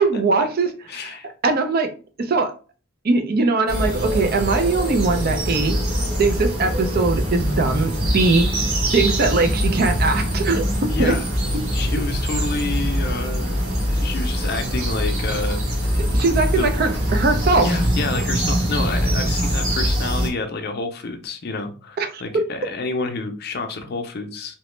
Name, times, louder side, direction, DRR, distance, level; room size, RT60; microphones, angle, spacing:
voice 1, 0.0-0.7 1.0-1.1 1.4-1.9 2.2-2.5 3.0-5.8 6.2-8.5 8.9-11.2 16.0-17.7 22.0-22.2, right 3 dB, 45° right, 0.4 m, -21 dB
voice 2, 0.9-1.3 10.9-11.3 11.7-13.6 13.9-15.9 16.5-17.0 17.6-24.5, left 3 dB, 50° left, 0.5 m, -29 dB
sound 1, 3.7-20.3, equal, 80° right, 1.2 m, -23 dB
2.9 x 2.1 x 3.1 m
head